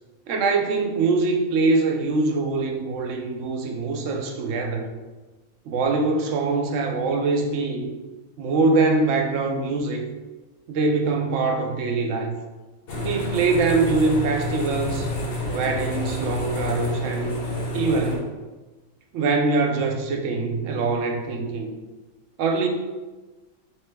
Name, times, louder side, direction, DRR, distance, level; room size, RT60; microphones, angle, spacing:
voice 1, 0.3-4.9 5.7-7.9 8.4-10.0 10.7-12.3 13.0-15.1 15.5-17.3 17.7-18.3 19.1-21.7 22.4-22.7, right 3 dB, 70° right, 3 dB, 0.9 m, -23 dB
sound 1, 12.9-18.2, left 1 dB, 55° left, 0.9 m, -28 dB
3.7 x 3.0 x 3.4 m, 1.2 s
omnidirectional pair, 1.4 m